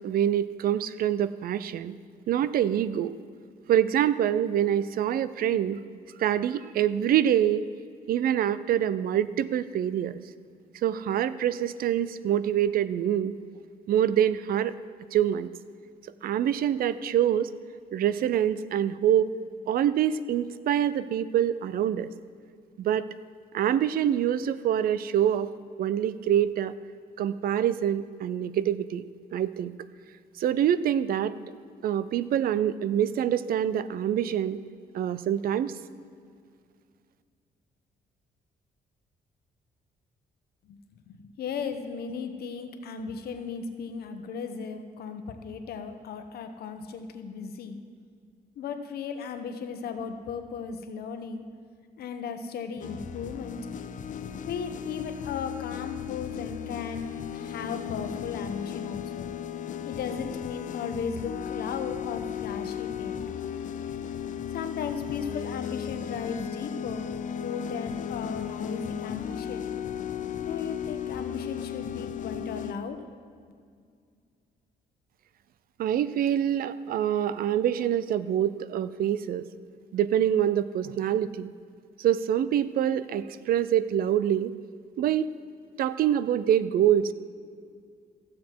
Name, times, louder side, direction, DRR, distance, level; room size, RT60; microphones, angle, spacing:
voice 1, 0.0-2.0 2.3-3.2 3.7-5.8 6.2-7.6 8.1-10.2 10.8-13.4 13.9-14.8 15.1-15.5 16.2-17.5 17.9-19.3 19.7-22.1 22.8-23.1 23.5-25.5 25.8-26.7 27.2-29.1 29.3-29.7 30.4-31.3 31.8-34.6 34.9-35.7 75.8-79.4 79.9-81.5 82.0-84.5 85.0-85.3 85.8-87.1, right 10 dB, 65° right, 15 dB, 0.4 m, -25 dB
voice 2, 40.6-47.8 48.6-51.4 52.0-53.6 54.4-57.1 57.3-59.3 59.8-63.3 64.5-69.6 70.4-73.0, left 6 dB, 75° left, 7 dB, 1.0 m, -36 dB
sound 1, 52.8-72.7, left 9 dB, 55° left, 0.5 m, -35 dB
15.0 x 7.3 x 4.6 m, 2.2 s
cardioid pair, 115°, 16 cm